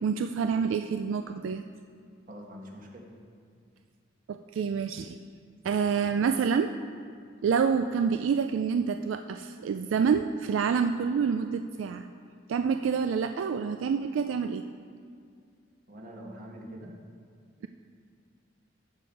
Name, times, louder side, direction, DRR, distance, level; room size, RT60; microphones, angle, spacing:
voice 1, 0.0-1.6 4.3-5.2 5.6-6.7 7.4-12.0 12.5-14.6, right 6 dB, 85° right, 8 dB, 0.3 m, -27 dB
voice 2, 2.3-3.0 15.9-16.9, equal, 45° right, -1 dB, 1.5 m, -44 dB
11.0 x 7.0 x 4.6 m, 2.2 s
head